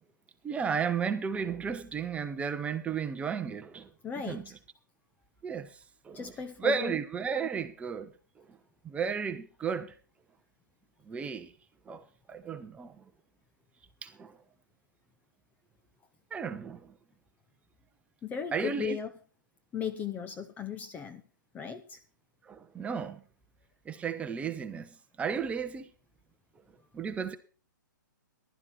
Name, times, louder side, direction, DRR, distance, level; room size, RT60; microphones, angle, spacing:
voice 1, 0.4-3.9 4.2-4.5 5.4-5.8 6.0-6.3 6.6-8.1 8.4-8.6 8.8-9.9 11.0-11.5 11.9-13.0 14.0-14.4 16.3-16.9 18.5-19.0 22.4-23.2 23.8-25.9 26.9-27.4, right 6 dB, 10° right, 1.1 m, -34 dB
voice 2, 4.0-4.5 6.1-6.9 18.2-19.1 19.7-21.2 21.5-22.0, left 7 dB, 15° left, 0.8 m, -37 dB
15.0 x 12.0 x 4.3 m
hypercardioid pair, 135°, 11 cm